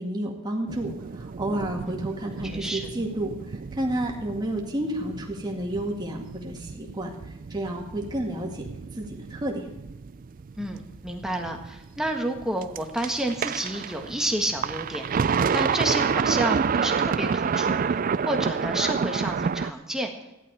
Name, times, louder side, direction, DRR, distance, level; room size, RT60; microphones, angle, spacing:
voice 1, 0.0-7.1 7.5-8.7 9.0-9.6, right 1 dB, 20° right, 0 dB, 2.1 m, -31 dB
sound 1, 0.7-19.7, right 6 dB, 40° right, 0.3 m, -29 dB
voice 2, 2.4-2.9 10.6-18.0 18.2-20.1, right 1 dB, ahead, 2 dB, 1.5 m, -30 dB
14.5 x 11.5 x 4.8 m, 0.98 s
head